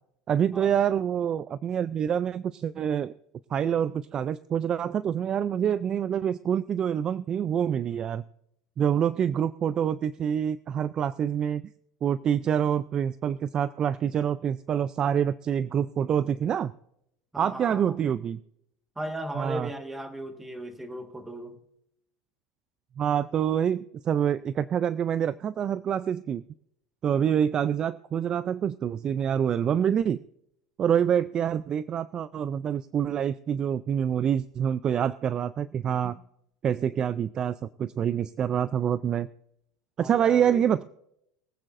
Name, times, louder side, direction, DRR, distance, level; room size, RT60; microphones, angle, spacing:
voice 1, 0.3-3.1 3.5-8.2 8.8-11.7 12.0-16.7 17.4-18.4 19.4-19.7 23.0-26.4 27.0-30.2 30.8-36.2 36.6-39.3 40.0-40.8, right 8 dB, 30° right, 17 dB, 0.3 m, -26 dB
voice 2, 17.3-17.9 18.9-21.6 36.0-36.2 40.0-40.6, right 1 dB, 10° right, 7 dB, 1.6 m, -37 dB
23.5 x 8.9 x 2.6 m, 0.77 s
supercardioid pair, 130°, 3 cm